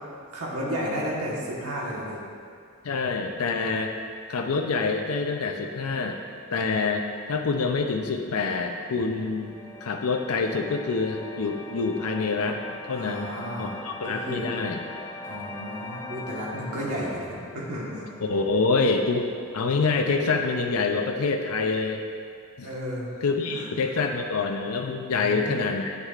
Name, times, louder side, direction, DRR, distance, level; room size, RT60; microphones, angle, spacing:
voice 1, 0.3-2.2 12.9-13.8 14.0-14.4 15.2-18.0 22.6-23.1 23.4-23.7 25.1-25.6, equal, 85° right, -5 dB, 1.3 m, -32 dB
voice 2, 2.8-3.9 4.3-6.2 6.5-9.5 9.8-12.6 12.9-14.8 18.2-19.3 19.5-22.0 22.6-22.7 23.2-26.0, left 4 dB, 85° left, 3 dB, 0.5 m, -26 dB
sound 1, 8.9-19.9, left 2 dB, 15° left, 0.3 m, -42 dB
9.6 x 8.2 x 2.4 m, 2.3 s
head